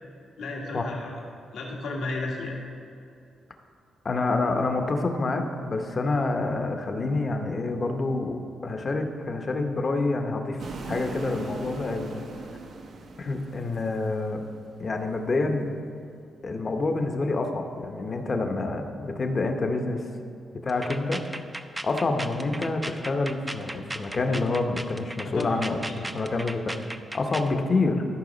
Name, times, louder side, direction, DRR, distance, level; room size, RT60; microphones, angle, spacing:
voice 1, 0.4-1.1 1.5-2.6 25.2-26.0 26.5-26.6, left 2 dB, 85° left, -2 dB, 1.6 m, -33 dB
voice 2, 4.0-12.2 13.2-14.4 14.8-15.7 16.4-20.0 20.6-21.2 21.8-26.8 27.1-28.0, left 3 dB, 45° left, 5 dB, 0.9 m, -27 dB
sound 1, 10.6-14.9, right 3 dB, 70° right, 0.8 m, -40 dB
sound 2, 20.7-27.5, right 1 dB, 15° right, 0.5 m, -37 dB
14.0 x 4.7 x 4.0 m, 2.5 s
cardioid pair, 80°, 0 cm